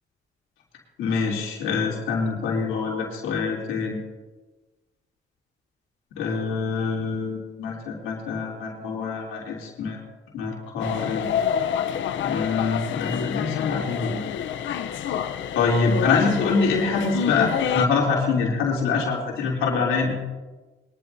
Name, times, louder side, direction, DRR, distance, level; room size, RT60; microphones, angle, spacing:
voice 1, 1.0-4.0 6.2-10.0 10.3-11.3 12.2-14.2 15.5-20.1, left 4 dB, 90° left, -2 dB, 3.3 m, -25 dB
sound 1, 10.8-17.9, left 8 dB, 70° left, 0.8 m, -28 dB
22.0 x 12.0 x 2.8 m, 1.2 s
cardioid pair, 90°, 20 cm